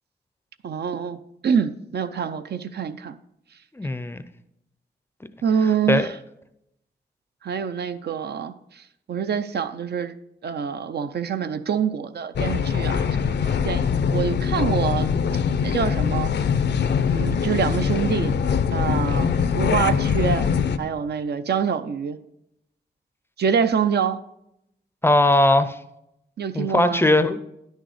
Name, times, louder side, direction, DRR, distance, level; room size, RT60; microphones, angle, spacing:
voice 1, 0.6-3.2 5.4-6.1 7.4-8.8 9.1-10.2 10.4-15.1 15.6-16.3 17.1-18.3 18.7-20.5 20.8-22.2 23.4-24.2 26.4-27.0, right 7 dB, 70° right, 0.5 m, -26 dB
voice 2, 3.7-4.2 5.9-6.1 25.0-25.8 26.5-27.4, left 1 dB, 15° left, 0.4 m, -19 dB
sound 1, 12.4-20.8, left 6 dB, 80° left, 0.5 m, -22 dB
10.0 x 6.4 x 4.9 m
wide cardioid pair, 155°, 18 cm